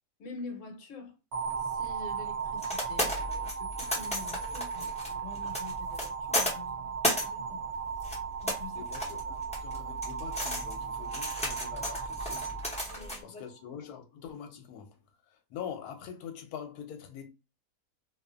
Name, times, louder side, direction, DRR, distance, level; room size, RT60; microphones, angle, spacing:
voice 1, 0.2-1.1 1.6-7.6 8.4-8.8 12.9-13.4, left 4 dB, 60° left, 1.0 m, -46 dB
sound 1, 1.3-13.5, right 6 dB, 60° right, 0.9 m, -37 dB
sound 2, 1.5-13.2, left 1 dB, 10° left, 0.4 m, -35 dB
voice 2, 8.7-15.0 15.3-17.3, left 8 dB, 85° left, 1.1 m, -44 dB
2.5 x 2.4 x 2.3 m
omnidirectional pair, 1.6 m